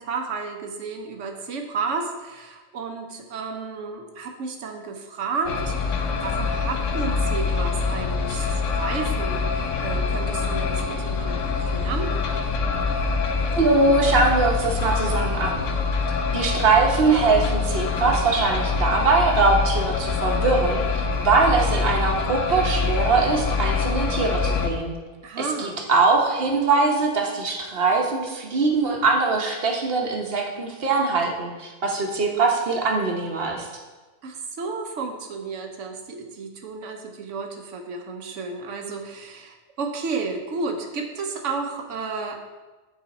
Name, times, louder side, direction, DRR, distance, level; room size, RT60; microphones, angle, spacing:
voice 1, 0.0-12.1 25.2-25.8 34.2-42.4, right 4 dB, 75° right, 4 dB, 1.2 m, -32 dB
sound 1, 5.5-24.7, left 4 dB, 85° left, 1.1 m, -25 dB
voice 2, 13.5-15.6 16.3-20.8 21.2-24.9 25.4-33.7, right 3 dB, 55° right, 1 dB, 1.2 m, -22 dB
9.3 x 4.1 x 4.1 m, 1.2 s
omnidirectional pair, 1.3 m